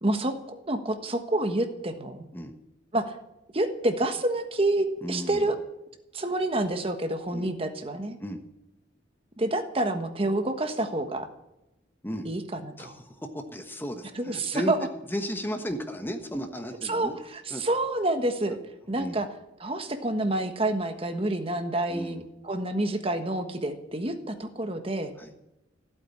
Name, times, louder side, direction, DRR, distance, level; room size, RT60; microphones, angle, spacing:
voice 1, 0.0-2.3 2.9-3.2 3.5-5.6 6.1-8.2 9.4-11.3 12.2-12.9 14.2-14.9 16.8-18.6 18.9-19.3 19.6-25.1, right 1 dB, 30° right, 7 dB, 1.4 m, -28 dB
voice 2, 5.0-5.5 7.3-7.5 8.2-8.4 12.0-12.3 12.8-14.7 15.1-17.2 17.5-17.6 19.0-19.2 21.9-22.3 25.2-25.3, equal, 10° left, 6 dB, 1.2 m, -34 dB
15.5 x 8.4 x 9.8 m, 0.93 s
head